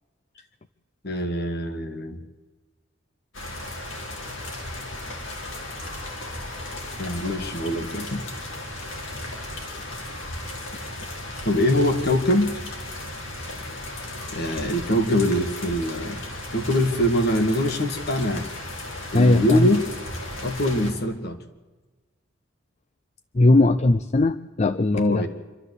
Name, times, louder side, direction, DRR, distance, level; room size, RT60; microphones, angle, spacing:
voice 1, 1.0-2.2 7.0-8.3 11.5-12.6 14.3-16.2 16.5-18.5 19.1-19.9 20.4-21.4 24.9-25.3, left 1 dB, 55° left, 7 dB, 2.1 m, -23 dB
sound 1, 3.3-20.9, left 1 dB, 80° left, 4.4 m, -35 dB
voice 2, 19.1-19.7 23.3-25.3, left 2 dB, 35° left, 12 dB, 0.6 m, -19 dB
26.5 x 13.0 x 8.3 m, 1.2 s
head